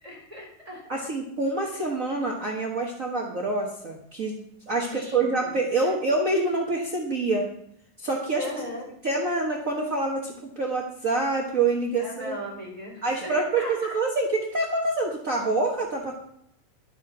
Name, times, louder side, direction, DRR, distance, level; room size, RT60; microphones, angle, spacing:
voice 1, 0.0-0.9 4.8-5.6 5.8-5.9 8.4-8.9 12.0-14.0, left 1 dB, 10° right, -3 dB, 3.8 m, -38 dB
voice 2, 0.9-4.4 4.7-7.5 8.0-8.4 9.0-12.4 13.0-13.6 13.9-16.1, right 2 dB, 70° right, -1 dB, 0.7 m, -26 dB
11.5 x 8.1 x 6.1 m, 0.74 s
omnidirectional pair, 3.9 m